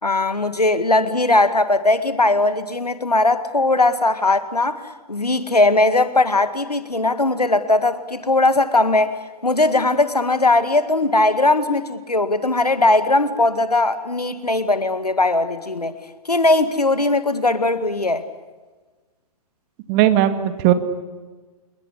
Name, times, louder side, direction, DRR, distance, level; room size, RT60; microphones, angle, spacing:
voice 1, 0.0-4.8 5.1-9.2 9.4-16.0 16.3-18.2, left 2 dB, 85° left, 12 dB, 2.1 m, -19 dB
voice 2, 19.9-20.7, right 12 dB, 35° right, 10 dB, 2.2 m, -17 dB
27.5 x 22.0 x 8.5 m, 1.3 s
figure-of-eight pair, 115°, 19 cm